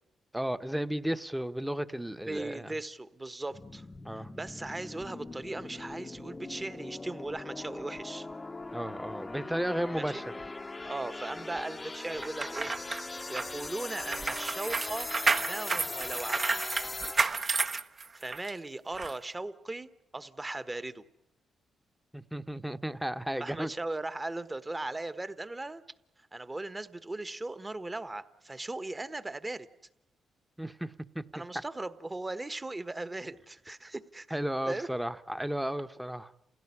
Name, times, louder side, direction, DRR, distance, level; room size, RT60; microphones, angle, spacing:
voice 1, 0.3-2.7 4.0-4.3 8.7-10.3 22.1-23.7 30.6-31.2 34.3-36.3, right 1 dB, 5° right, 1.0 m, -34 dB
voice 2, 2.3-3.8 4.1-8.3 9.9-10.1 10.8-15.1 15.4-16.6 18.1-21.0 23.4-25.8 26.3-29.7 31.3-34.4 34.7-34.9, right 2 dB, 20° right, 1.3 m, -38 dB
sound 1, 3.5-17.5, left 2 dB, 25° left, 0.8 m, -40 dB
sound 2, 12.2-18.5 19.0-19.1, right 4 dB, 45° right, 1.1 m, -31 dB
28.0 x 16.5 x 9.9 m
cardioid pair, 65°, 0 cm